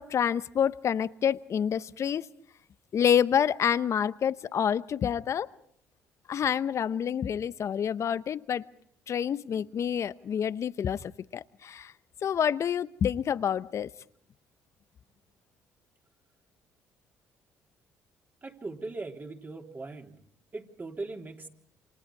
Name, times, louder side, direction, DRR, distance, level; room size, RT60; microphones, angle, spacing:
voice 1, 0.0-2.3 2.9-5.5 6.3-8.7 9.1-11.9 12.2-13.9, left 8 dB, 50° left, 0.9 m, -28 dB
voice 2, 18.4-20.1 20.5-21.5, right 3 dB, 30° right, 3.6 m, -39 dB
28.5 x 26.0 x 4.8 m
supercardioid pair, 65°, 6 cm